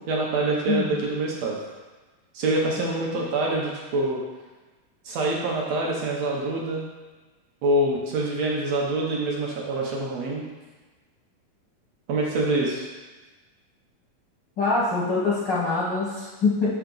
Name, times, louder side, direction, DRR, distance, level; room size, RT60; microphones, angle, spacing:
voice 1, 0.1-1.6 2.3-4.2 5.0-6.8 7.6-10.4 12.1-12.9, right 2 dB, 70° right, -2 dB, 1.6 m, -25 dB
voice 2, 14.6-16.7, left 3 dB, 75° left, -8 dB, 1.0 m, -24 dB
6.9 x 5.7 x 3.8 m, 1.2 s
omnidirectional pair, 4.0 m